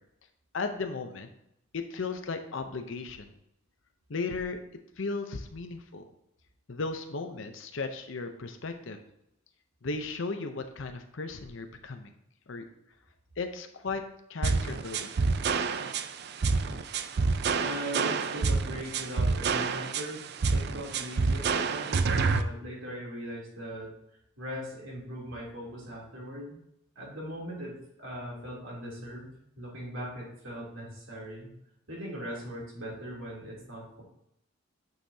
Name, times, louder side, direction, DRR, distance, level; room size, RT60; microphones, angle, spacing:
voice 1, 0.5-1.3 1.7-3.3 4.1-4.6 5.0-6.1 6.7-9.0 9.8-12.1 12.5-12.6 13.4-14.0 14.3-15.1, left 4 dB, 65° left, 6 dB, 0.7 m, -35 dB
sound 1, 14.4-22.4, right 4 dB, 50° right, 0.4 m, -28 dB
voice 2, 17.6-23.9 24.4-26.6 26.9-31.5 31.9-34.0, equal, 70° right, -4 dB, 3.0 m, -40 dB
9.1 x 6.6 x 2.8 m, 0.79 s
head